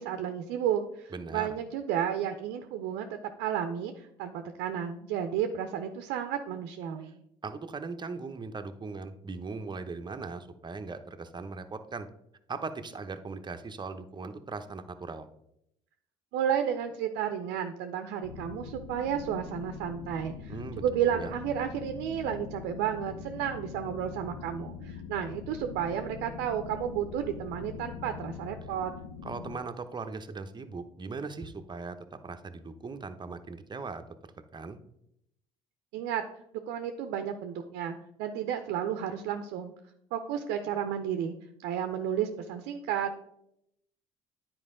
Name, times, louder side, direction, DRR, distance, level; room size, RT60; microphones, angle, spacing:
voice 1, 0.0-7.2 16.3-28.9 35.9-36.2 36.7-39.7 40.1-41.3 41.6-43.2, right 9 dB, 75° right, 7 dB, 0.6 m, -32 dB
voice 2, 1.1-1.6 7.4-12.1 12.5-15.3 20.5-20.8 21.1-21.3 29.2-34.0 34.5-34.8, right 4 dB, 25° right, 8 dB, 0.8 m, -39 dB
sound 1, 18.2-29.6, left 6 dB, 90° left, 0.7 m, -43 dB
9.6 x 4.5 x 3.7 m, 0.77 s
hypercardioid pair, 65°, 17 cm